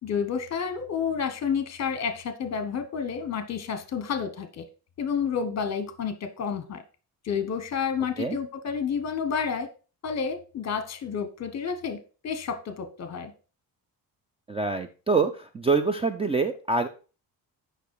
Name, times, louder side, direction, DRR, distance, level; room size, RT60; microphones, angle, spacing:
voice 1, 0.0-4.6 5.0-6.8 7.2-9.7 10.0-13.3, left 6 dB, 45° left, 10 dB, 1.1 m, -30 dB
voice 2, 14.5-16.9, right 4 dB, 15° right, 8 dB, 0.3 m, -25 dB
7.1 x 5.5 x 4.7 m, 0.35 s
cardioid pair, 165°, 37 cm